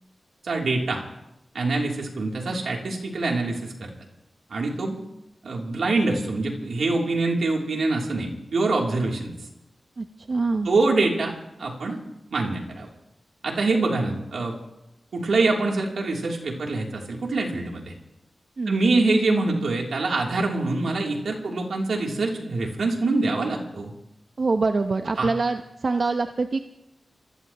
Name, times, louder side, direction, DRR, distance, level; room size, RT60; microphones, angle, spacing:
voice 1, 0.4-1.0 1.5-3.9 4.5-5.0 5.4-9.3 10.6-11.3 11.6-12.0 12.3-12.9 13.4-14.5 15.1-17.9 18.7-23.9 25.2-25.3, right 3 dB, 80° right, -1 dB, 3.3 m, -25 dB
voice 2, 10.0-10.7 18.6-18.8 24.4-26.6, right 3 dB, 60° right, 6 dB, 0.9 m, -25 dB
27.0 x 16.5 x 3.1 m, 0.89 s
cardioid pair, 50°, 0 cm